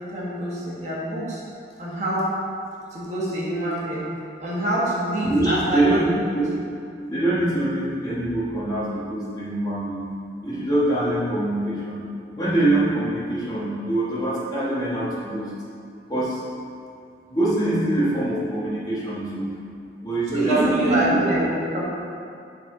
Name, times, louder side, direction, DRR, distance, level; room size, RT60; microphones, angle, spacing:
voice 1, 0.1-1.4 1.8-2.3 2.9-4.1 4.4-6.0 20.3-21.8, right 1 dB, 40° right, -7 dB, 1.5 m, -25 dB
voice 2, 5.2-6.5 7.1-10.1 10.4-12.0 12.3-15.5 16.1-16.4 17.3-19.5 20.0-21.2, right 1 dB, 20° left, -8 dB, 1.3 m, -24 dB
10.0 x 4.1 x 3.8 m, 2.4 s
head